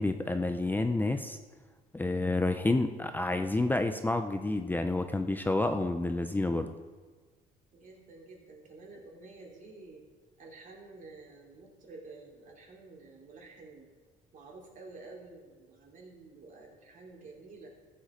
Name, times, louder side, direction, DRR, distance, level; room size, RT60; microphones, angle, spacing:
voice 1, 0.0-1.4 1.9-6.7, left 2 dB, 10° left, 7 dB, 0.6 m, -29 dB
voice 2, 7.7-10.0 10.4-13.9 14.3-17.7, right 3 dB, 50° right, 0 dB, 3.3 m, -50 dB
14.5 x 7.7 x 5.2 m, 1.4 s
cardioid pair, 110°, 17 cm